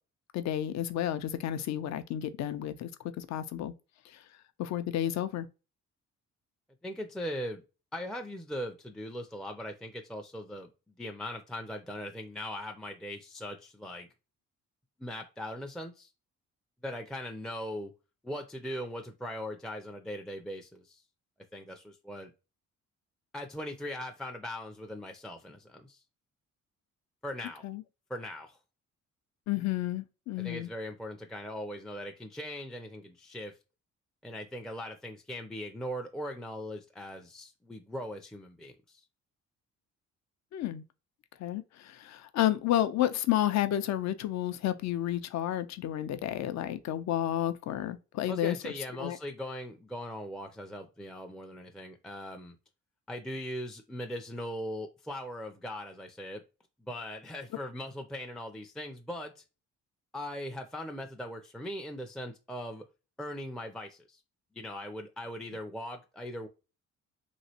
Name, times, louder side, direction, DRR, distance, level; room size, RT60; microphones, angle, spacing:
voice 1, 0.3-2.9 3.2-3.7 4.1-4.2 4.6-5.5 27.6-27.8 29.5-30.7 40.5-40.8 41.4-48.7 49.0-49.2, left 12 dB, 65° left, 0.5 m, -31 dB
voice 2, 6.8-7.6 7.9-10.7 11.0-14.1 15.0-16.1 16.8-17.9 18.2-21.0 21.5-22.3 23.3-26.0 27.2-27.6 28.1-28.6 30.4-33.6 34.2-39.0 48.3-52.6 53.1-56.4 56.8-59.4 60.1-62.8 63.2-64.2 64.5-66.5, equal, ahead, 0.4 m, -40 dB
3.1 x 2.8 x 2.8 m
cardioid pair, 90°, 30 cm